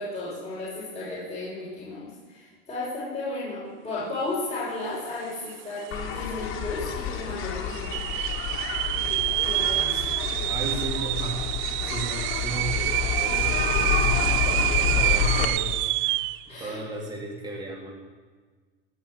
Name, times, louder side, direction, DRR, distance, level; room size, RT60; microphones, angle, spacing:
voice 1, 0.0-8.0 9.2-9.9 16.0-16.1 16.5-16.8, left 2 dB, 20° left, -9 dB, 6.0 m, -34 dB
sound 1, 5.5-5.6 5.8-6.4 6.9-7.0 7.7-16.4, right 18 dB, 40° right, 0.4 m, -27 dB
sound 2, 5.9-15.4, left 9 dB, 45° left, 2.1 m, -29 dB
voice 2, 10.5-11.5 11.9-15.7 16.1-16.2 16.5-17.9, right 3 dB, 15° right, -2 dB, 3.4 m, -35 dB
18.0 x 7.2 x 9.1 m, 1.4 s
hypercardioid pair, 105°, 31 cm